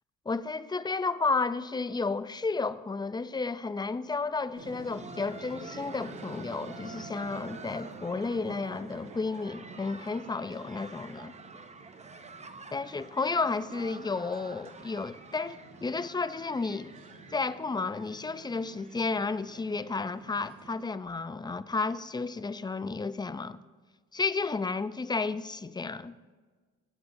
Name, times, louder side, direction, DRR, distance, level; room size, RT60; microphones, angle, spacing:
voice 1, 0.3-11.3 12.7-16.9 17.3-23.6 24.1-26.1, left 4 dB, 15° left, 0.5 m, -32 dB
Laughter, 4.4-20.1 20.4-20.5 21.1-21.2 21.7-21.9 23.0-23.1, right 4 dB, 20° right, 0.8 m, -49 dB
sound 1, 4.5-20.8, right 3 dB, 85° right, 1.8 m, -50 dB
26.0 x 9.2 x 2.7 m
cardioid pair, 90°, 30 cm